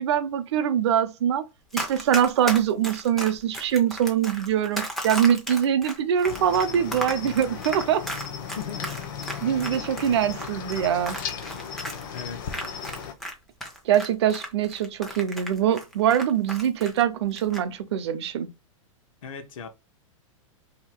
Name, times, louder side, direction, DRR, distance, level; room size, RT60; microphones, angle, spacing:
voice 1, 0.0-1.4 1.7-8.0 9.4-11.2 13.9-18.5, right 9 dB, 55° right, 0.5 m, -23 dB
Run, 1.7-13.3 13.6-17.0 17.3-17.6, equal, ahead, 0.3 m, -34 dB
Cricket, 6.2-13.1, left 7 dB, 40° left, 0.6 m, -36 dB
voice 2, 8.5-9.0 9.7-9.9 12.1-12.6 19.2-19.7, left 7 dB, 80° left, 0.9 m, -37 dB
2.8 x 2.6 x 4.3 m
supercardioid pair, 175°, 17 cm